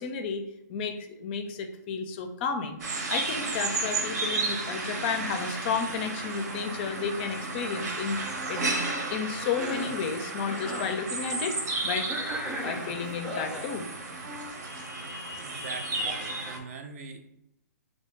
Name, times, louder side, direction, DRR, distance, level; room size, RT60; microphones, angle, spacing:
voice 1, 0.0-2.8 3.1-8.2 8.5-8.6 9.1-11.6 11.8-12.1 12.6-13.8 15.5-15.7, left 6 dB, 35° left, 7 dB, 0.4 m, -32 dB
sound 1, 2.8-16.6, right 3 dB, 65° right, 1.0 m, -33 dB
sound 2, 8.2-10.0 11.2-12.7 14.2-14.5, right 2 dB, 90° right, 1.4 m, -50 dB
Cough, 9.4-10.0 10.4-11.0 12.1-13.7, equal, 5° right, 0.6 m, -36 dB
voice 2, 15.4-17.2, right 4 dB, 50° right, 6 dB, 0.6 m, -42 dB
3.4 x 2.7 x 4.5 m, 0.81 s
hypercardioid pair, 145°, 10 cm